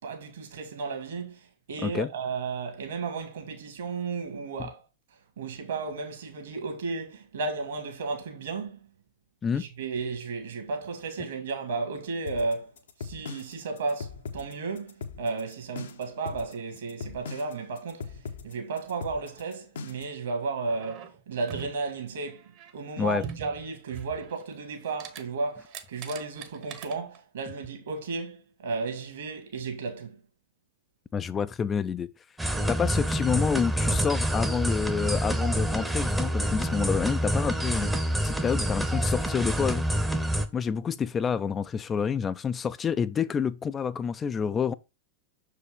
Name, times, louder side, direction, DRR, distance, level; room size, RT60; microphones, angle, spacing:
voice 1, 0.0-4.8 5.4-8.9 9.5-12.7 13.0-18.2 18.4-30.2, right 4 dB, 65° right, 1.7 m, -34 dB
sound 1, 12.3-20.2, left 5 dB, 65° left, 0.8 m, -40 dB
sound 2, 20.7-21.9 22.3-22.7 23.2-24.5 24.8-25.2 25.5-27.2 27.7-27.8, right 8 dB, 40° right, 0.9 m, -42 dB
voice 2, 31.1-32.1 32.7-37.9 38.2-39.9 40.5-44.7, left 6 dB, 20° left, 0.3 m, -28 dB
sound 3, 32.4-40.5, right 1 dB, 5° right, 0.7 m, -27 dB
6.3 x 4.7 x 3.4 m
figure-of-eight pair, 90°, 0 cm